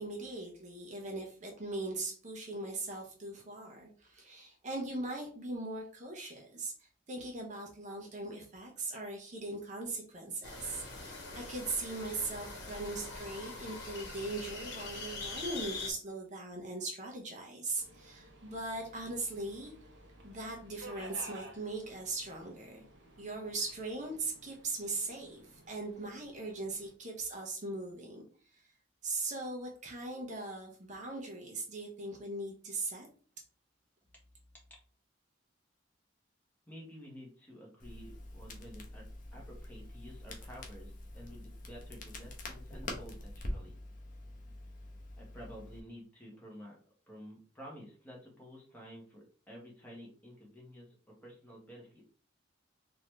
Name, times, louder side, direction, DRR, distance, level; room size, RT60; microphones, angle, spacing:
voice 1, 0.0-19.7 20.2-22.8 23.2-28.2 28.5-28.7 29.0-33.1, right 2 dB, 40° right, 0 dB, 0.9 m, -40 dB
sound 1, 10.4-15.9, left 3 dB, 65° left, 1.5 m, -43 dB
Subway metro underground, 17.8-26.9, right 1 dB, 75° right, 1.1 m, -54 dB
voice 2, 36.7-43.8 45.2-52.0, equal, 10° left, -3 dB, 1.4 m, -51 dB
Crackle, 37.8-45.8, left 1 dB, 45° left, 0.9 m, -45 dB
4.1 x 2.9 x 3.2 m, 0.42 s
head